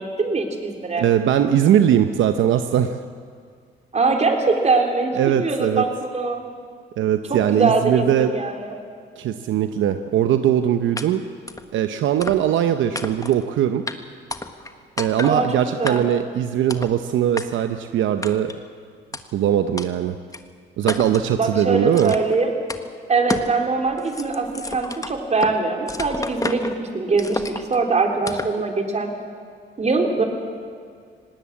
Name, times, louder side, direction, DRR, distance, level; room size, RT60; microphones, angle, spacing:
voice 1, 0.0-1.1 3.9-6.4 7.3-8.8 15.2-16.0 21.3-22.5 23.1-29.1 29.8-30.2, right 3 dB, 35° right, 3 dB, 3.5 m, -22 dB
voice 2, 1.0-3.0 5.1-5.8 7.0-8.3 9.2-11.2 11.7-13.8 15.0-18.6 19.3-20.2 20.8-22.1, right 10 dB, 75° right, 8 dB, 0.8 m, -20 dB
sound 1, 11.0-11.1 11.5-11.7 12.2-12.6 12.9-13.4 13.9-14.0 14.3-14.7 15.0-15.4 15.9-16.2 16.7-16.9 17.4-17.5 18.2-18.6 19.1-19.2 19.8-19.9 20.3-20.4 20.9-21.3 21.9-22.4 22.7-22.8 23.3-23.5 23.9-25.6 25.9-26.8 27.2-27.8 28.3-28.6, left 2 dB, 15° left, 1.3 m, -30 dB
19.5 x 18.5 x 8.5 m, 2.1 s
cardioid pair, 90°, 20 cm